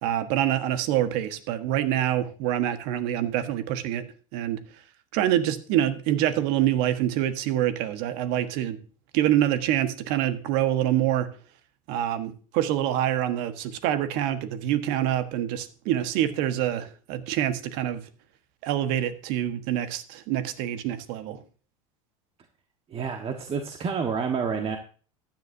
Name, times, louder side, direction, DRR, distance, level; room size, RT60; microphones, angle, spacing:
voice 1, 0.0-4.0 4.3-4.6 5.1-8.8 9.1-11.3 11.9-18.1 18.6-21.4, right 11 dB, 60° right, 10 dB, 1.4 m, -26 dB
voice 2, 22.9-24.8, right 6 dB, 30° right, 4 dB, 1.4 m, -29 dB
14.5 x 10.5 x 2.7 m, 0.39 s
hypercardioid pair, 90°, 18 cm